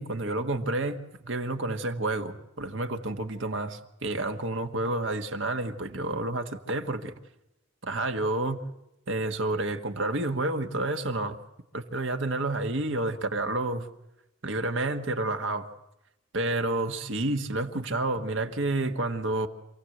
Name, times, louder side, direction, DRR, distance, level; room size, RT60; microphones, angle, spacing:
voice 1, 0.0-7.1 7.8-8.6 9.1-11.4 11.7-13.9 14.4-15.7 16.3-19.5, right 2 dB, 65° right, 6 dB, 1.5 m, -29 dB
27.0 x 16.5 x 7.8 m, 0.89 s
head